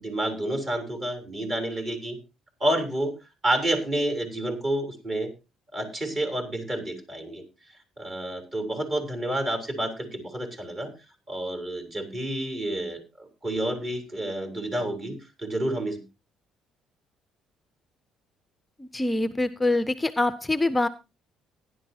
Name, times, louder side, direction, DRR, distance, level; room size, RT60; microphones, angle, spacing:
voice 1, 0.0-2.2 2.6-3.1 3.4-5.3 5.7-7.4 8.0-10.9 11.3-16.0, right 1 dB, 35° right, 5 dB, 3.5 m, -29 dB
voice 2, 18.8-20.9, left 2 dB, 10° left, 13 dB, 0.5 m, -25 dB
16.5 x 10.5 x 2.8 m, 0.27 s
cardioid pair, 105°, 0 cm